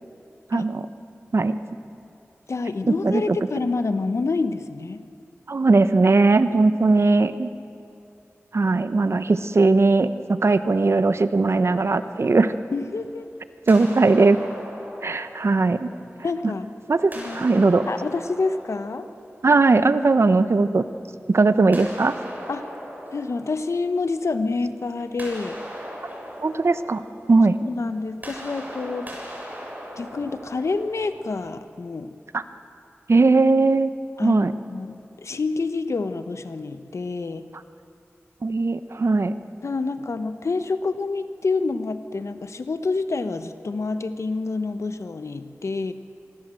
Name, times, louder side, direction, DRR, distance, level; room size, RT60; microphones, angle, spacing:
voice 1, 0.5-0.8 1.3-1.5 2.9-3.4 5.5-7.5 8.5-12.5 13.7-14.4 15.0-15.9 16.9-17.8 19.4-20.8 21.3-22.1 26.4-27.0 27.3-27.6 32.3-32.4 33.1-33.9 34.2-34.5 38.4-39.3, right 3 dB, 60° right, 12 dB, 1.0 m, -19 dB
voice 2, 2.5-5.0 12.7-13.3 16.2-16.7 17.1-17.4 17.9-19.1 22.5-22.7 23.1-25.6 27.6-29.1 30.0-32.1 34.2-34.4 34.7-37.4 39.6-45.9, left 3 dB, 75° left, 10 dB, 1.1 m, -27 dB
sound 1, 11.6-13.3 13.7-16.5 17.0-19.9 21.7-24.5 24.8-31.5, equal, 35° right, 7.7 m, -39 dB
26.0 x 22.5 x 7.7 m, 2.6 s
wide cardioid pair, 55°, 5 cm